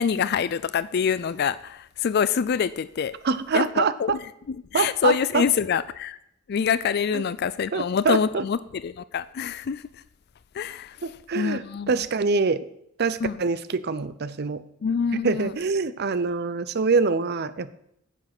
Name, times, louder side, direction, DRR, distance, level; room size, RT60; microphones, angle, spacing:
voice 1, 0.0-3.2 3.5-4.1 4.5-6.2 6.5-9.9 10.5-12.0 13.2-13.4 14.8-15.5, left 7 dB, 55° left, 17 dB, 0.4 m, -26 dB
voice 2, 3.2-4.2 4.7-5.4 7.1-7.2 7.7-8.4 11.0-12.7 13.0-14.6 15.1-17.7, right 4 dB, 55° right, 15 dB, 0.6 m, -25 dB
9.9 x 7.4 x 6.0 m, 0.74 s
head